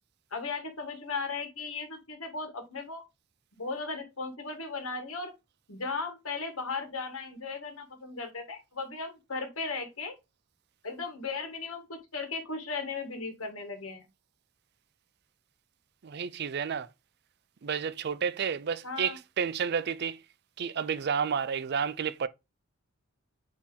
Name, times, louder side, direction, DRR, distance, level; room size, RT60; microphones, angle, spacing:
voice 1, 0.3-3.0 3.6-5.3 5.7-10.1 10.8-14.0 18.8-19.2, left 4 dB, 85° left, 1.7 m, -36 dB
voice 2, 16.0-16.9 17.6-20.2 20.6-22.3, right 7 dB, 50° right, 0.4 m, -31 dB
8.4 x 2.9 x 3.8 m
head